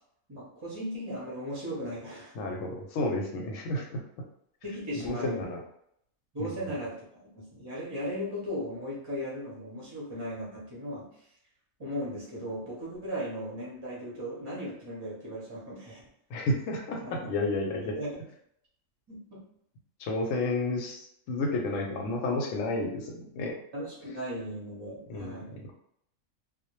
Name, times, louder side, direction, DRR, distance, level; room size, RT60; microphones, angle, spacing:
voice 1, 0.3-2.4 4.6-5.5 6.3-11.1 11.8-16.0 17.0-17.3 18.0-18.2 19.1-19.4 23.7-25.6, equal, 30° right, -6 dB, 0.5 m, -37 dB
voice 2, 2.3-4.0 4.9-5.6 6.4-6.6 16.3-17.9 20.0-23.5 25.1-25.4, left 2 dB, 75° left, 1 dB, 0.9 m, -31 dB
2.2 x 2.0 x 3.0 m, 0.72 s
omnidirectional pair, 1.4 m